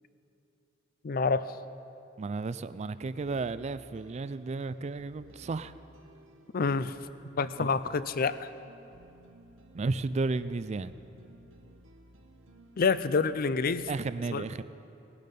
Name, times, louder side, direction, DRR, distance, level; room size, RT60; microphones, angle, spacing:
voice 1, 1.0-1.5 6.5-7.0 7.4-8.5 12.8-13.9 14.3-14.4, left 4 dB, 50° left, 14 dB, 0.5 m, -27 dB
voice 2, 2.2-5.7 7.6-7.8 9.7-10.9 13.9-14.6, right 3 dB, 35° right, 14 dB, 0.4 m, -33 dB
sound 1, 3.0-13.7, right 1 dB, 75° right, 1.2 m, -57 dB
18.0 x 12.0 x 5.4 m, 2.9 s
head